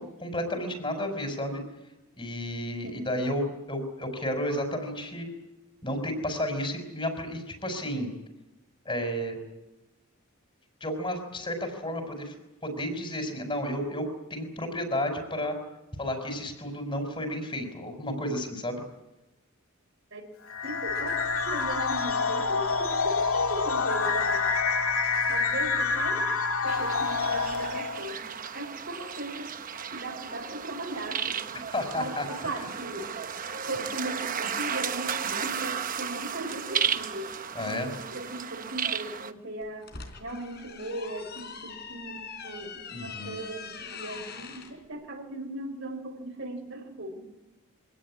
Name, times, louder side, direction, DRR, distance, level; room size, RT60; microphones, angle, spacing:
voice 1, 0.0-1.6 2.2-5.3 5.8-8.1 8.9-9.4 10.8-12.3 12.6-15.6 16.0-18.8 31.5-32.3 37.5-37.9 42.9-43.4, left 1 dB, 25° left, 5 dB, 5.2 m, -32 dB
sound 1, 20.5-28.1, left 4 dB, 75° left, 1.9 m, -27 dB
voice 2, 20.6-24.4 25.3-26.3 26.6-29.5 29.9-31.5 31.9-33.1 33.6-37.3 37.6-39.9 40.2-47.3, right 1 dB, 55° right, 3 dB, 5.0 m, -38 dB
sound 2, 26.7-39.3, right 7 dB, 40° right, 1.0 m, -34 dB
sound 3, 39.6-44.7, left 5 dB, 50° left, 3.7 m, -42 dB
25.0 x 17.5 x 9.9 m, 0.99 s
head